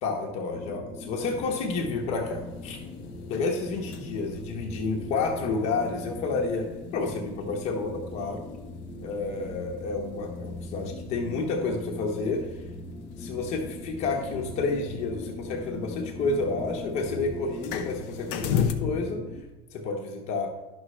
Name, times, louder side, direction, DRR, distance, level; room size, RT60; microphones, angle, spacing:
voice 1, 0.0-2.8 3.3-8.5 9.0-12.6 13.2-19.2 19.7-20.5, left 3 dB, 50° left, 1 dB, 1.1 m, -30 dB
sound 1, 0.5-19.4, left 2 dB, 15° left, 0.6 m, -40 dB
sound 2, 1.3-18.7, left 7 dB, 75° left, 0.7 m, -39 dB
10.5 x 6.3 x 3.3 m, 1.1 s
supercardioid pair, 140°, 14 cm